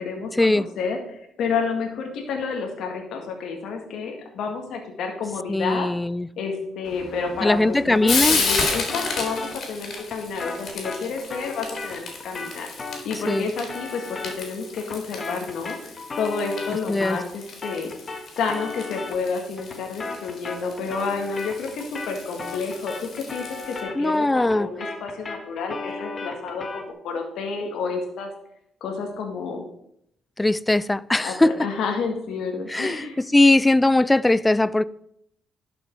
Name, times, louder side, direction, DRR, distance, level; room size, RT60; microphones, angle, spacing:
voice 1, 0.0-5.9 6.4-12.7 13.0-17.9 18.4-28.3 28.8-29.7 31.2-33.2, left 5 dB, 75° left, 1.8 m, -30 dB
voice 2, 5.5-6.3 7.4-8.4 13.3-13.5 16.9-17.2 24.0-24.7 30.4-31.5 32.7-33.0 33.3-34.8, left 2 dB, 15° left, 0.4 m, -20 dB
Frying (food), 6.8-23.8, left 4 dB, 60° left, 3.4 m, -33 dB
sound 1, 8.0-17.4 17.6-26.9, left 3 dB, 35° left, 1.6 m, -37 dB
11.5 x 6.2 x 4.6 m
cardioid pair, 90°, 0 cm